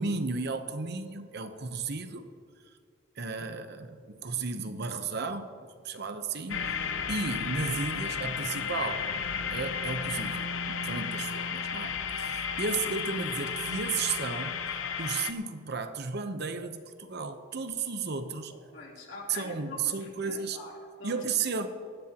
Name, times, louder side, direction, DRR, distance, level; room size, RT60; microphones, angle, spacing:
voice 1, 0.0-2.3 3.2-9.1 9.5-14.6 15.0-18.5 19.3-20.6 21.0-21.7, right 4 dB, 60° right, 8 dB, 0.9 m, -34 dB
sound 1, 6.5-15.3, left 6 dB, 90° left, 0.7 m, -33 dB
voice 2, 18.5-21.2 21.5-21.6, left 3 dB, 70° left, -3 dB, 3.4 m, -45 dB
20.0 x 15.0 x 3.0 m, 2.1 s
head